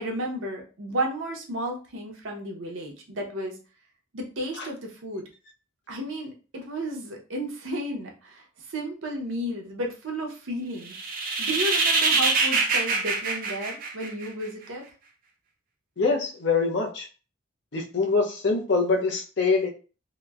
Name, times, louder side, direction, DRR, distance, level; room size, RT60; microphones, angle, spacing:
voice 1, 0.0-3.6 4.1-5.2 5.9-10.9 11.4-14.9, right 1 dB, 85° right, 0.7 m, -33 dB
sound 1, 10.9-14.5, right 4 dB, 45° right, 0.4 m, -24 dB
voice 2, 16.0-17.1 17.7-19.7, left 4 dB, 60° left, 0.6 m, -24 dB
2.9 x 2.1 x 2.3 m
head